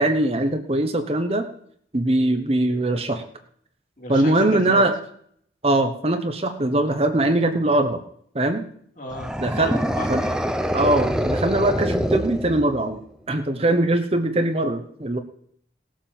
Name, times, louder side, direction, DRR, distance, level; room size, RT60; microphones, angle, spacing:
voice 1, 0.0-1.5 1.9-3.2 4.1-4.9 5.6-8.0 8.3-8.6 9.4-9.7 10.1-10.2 10.7-15.2, right 1 dB, 35° right, 6 dB, 1.0 m, -21 dB
voice 2, 4.0-4.8 9.0-10.4, left 1 dB, 45° left, 0 dB, 3.3 m, -34 dB
sound 1, 9.1-13.0, equal, 5° right, 0.8 m, -25 dB
17.5 x 7.5 x 7.1 m, 0.65 s
head